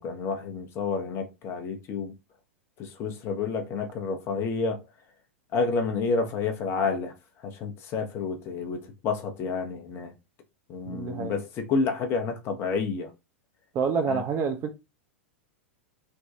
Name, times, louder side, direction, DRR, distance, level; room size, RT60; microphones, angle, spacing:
voice 1, 0.0-2.1 2.8-4.8 5.5-7.1 7.4-10.1 10.7-13.1 14.0-14.2, left 4 dB, 35° left, 0.7 m, -29 dB
voice 2, 10.9-11.4 13.7-14.7, right 5 dB, 35° right, 0.6 m, -27 dB
3.4 x 2.2 x 2.7 m
figure-of-eight pair, 95°, 7 cm